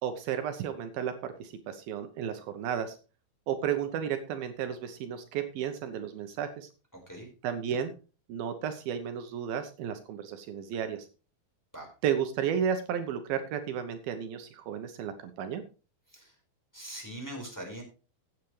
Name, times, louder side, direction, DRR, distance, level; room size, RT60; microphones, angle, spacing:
voice 1, 0.0-3.0 3.5-6.7 7.4-7.9 8.3-11.1 12.0-15.6, right 8 dB, 75° right, 8 dB, 2.8 m, -33 dB
voice 2, 6.9-7.3 11.7-11.9 16.1-16.3 16.7-17.8, right 1 dB, 5° left, 0 dB, 4.3 m, -41 dB
15.5 x 9.2 x 3.2 m, 0.34 s
omnidirectional pair, 4.4 m